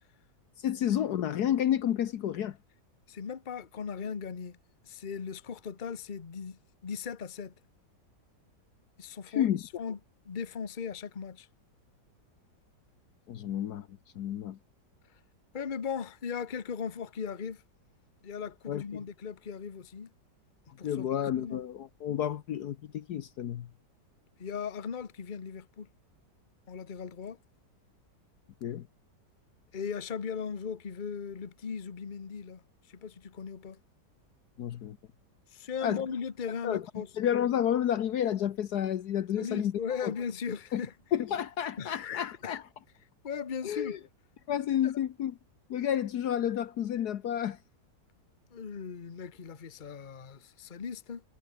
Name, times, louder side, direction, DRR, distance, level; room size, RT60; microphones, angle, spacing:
voice 1, 0.6-2.6 9.3-9.6 13.3-13.9 14.1-14.6 18.7-19.0 20.8-23.7 28.6-28.9 34.6-35.0 35.8-36.0 36.6-36.8 37.2-40.1 40.7-40.8 41.1-42.6 43.6-44.0 44.5-45.3 45.7-47.6, left 10 dB, 65° left, 1.3 m, -30 dB
voice 2, 3.1-4.6 4.8-7.5 9.0-10.0 10.2-11.5 15.5-17.6 18.2-20.1 20.8-21.6 24.4-25.9 26.7-27.4 29.7-32.6 32.9-33.8 35.5-37.1 39.4-40.9 41.8-42.6 43.2-44.0 44.8-44.9 48.5-51.2, left 6 dB, 30° left, 1.2 m, -38 dB
omnidirectional pair, 1.9 m